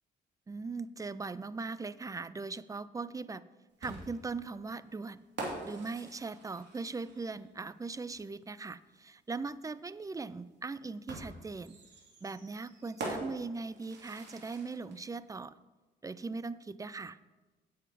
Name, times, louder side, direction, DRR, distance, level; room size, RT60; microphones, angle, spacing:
voice 1, 0.5-3.4 3.8-5.3 5.6-11.8 12.2-15.6 16.0-17.2, right 4 dB, 15° right, 17 dB, 0.3 m, -40 dB
sound 1, 3.8-7.5 8.9-9.0 11.1-15.0, right 2 dB, 60° right, 2.7 m, -44 dB
9.0 x 7.8 x 5.0 m, 1.2 s
cardioid pair, 90°, 20 cm